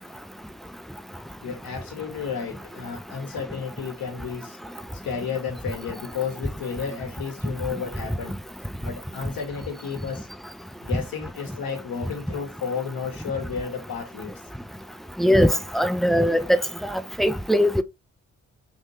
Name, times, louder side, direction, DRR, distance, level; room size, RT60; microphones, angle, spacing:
voice 1, 1.4-4.6 5.0-8.4 8.8-10.3 10.8-14.3, left 6 dB, 70° left, 1.3 m, -32 dB
voice 2, 15.2-16.4 17.2-17.8, equal, ahead, 0.4 m, -20 dB
3.6 x 2.6 x 3.1 m
supercardioid pair, 40°, 36 cm